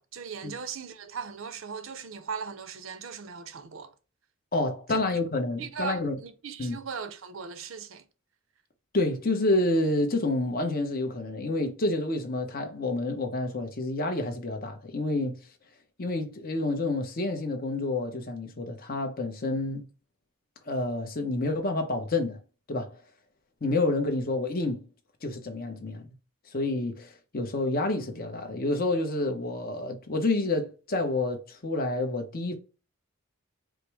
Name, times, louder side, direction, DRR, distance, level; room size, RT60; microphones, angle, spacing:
voice 1, 0.0-3.9 4.9-5.0 5.6-8.0, right 6 dB, 60° right, 0.6 m, -38 dB
voice 2, 4.5-6.1 6.6-6.8 8.9-15.4 16.0-19.8 20.7-22.4 22.7-23.0 23.6-24.8 25.2-26.1 26.5-32.5, left 2 dB, 40° left, 0.9 m, -29 dB
5.0 x 2.1 x 4.7 m
head